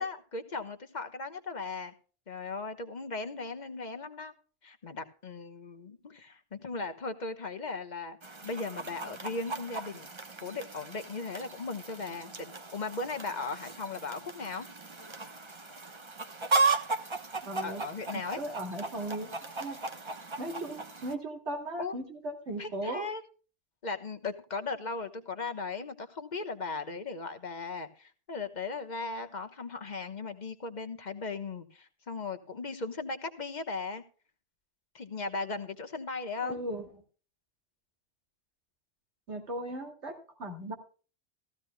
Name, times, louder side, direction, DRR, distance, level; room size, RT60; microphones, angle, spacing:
voice 1, 0.0-1.9 2.3-4.3 4.6-8.2 8.4-10.1 10.4-14.7 17.6-18.4 21.8-21.9 22.6-23.2 23.8-34.0 34.9-36.6, left 3 dB, 40° left, 8 dB, 1.2 m, -37 dB
Chicken rooster, 8.2-21.1, right 4 dB, 25° right, 0.9 m, -36 dB
voice 2, 17.4-17.8 18.4-19.8 20.4-23.1 36.4-36.8 39.3-40.7, right 1 dB, 75° right, 3 dB, 2.8 m, -37 dB
15.5 x 14.5 x 2.2 m, 0.37 s
omnidirectional pair, 1.2 m